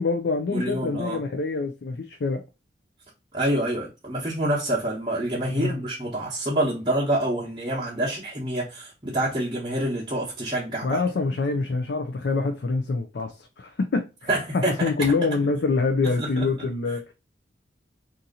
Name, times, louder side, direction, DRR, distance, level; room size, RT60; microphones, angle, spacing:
voice 1, 0.0-2.4 5.5-5.8 10.8-14.1 14.5-17.1, left 3 dB, 70° left, 0.4 m, -25 dB
voice 2, 0.5-1.2 3.3-11.0 14.3-14.9 16.0-16.5, right 1 dB, 25° right, 0.9 m, -27 dB
2.8 x 2.5 x 3.8 m
head